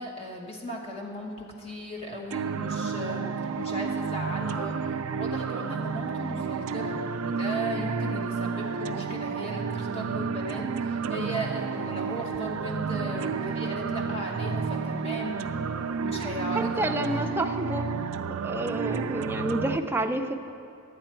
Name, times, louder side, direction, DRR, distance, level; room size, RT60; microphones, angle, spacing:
voice 1, 0.0-15.3 16.0-17.0, equal, 30° left, -1 dB, 1.0 m, -37 dB
sound 1, 2.3-19.8, right 5 dB, 90° right, 0.4 m, -31 dB
voice 2, 16.5-17.8 18.3-20.3, right 1 dB, 10° right, 4 dB, 0.4 m, -29 dB
11.5 x 8.3 x 4.4 m, 2.7 s
head